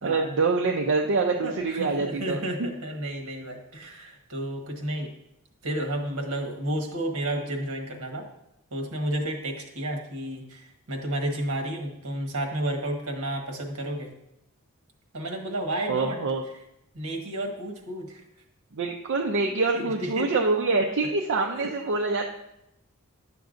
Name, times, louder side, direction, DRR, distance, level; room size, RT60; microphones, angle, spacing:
voice 1, 0.0-2.7 15.9-16.4 18.7-22.2, right 3 dB, 55° right, 1 dB, 0.5 m, -25 dB
voice 2, 1.4-5.1 5.6-8.3 8.7-14.1 15.1-16.2 16.9-18.2 19.8-20.3 20.8-20.9 21.5-21.7 22.0-22.1, right 1 dB, 75° right, 2 dB, 1.3 m, -31 dB
10.5 x 6.8 x 2.5 m, 0.83 s
head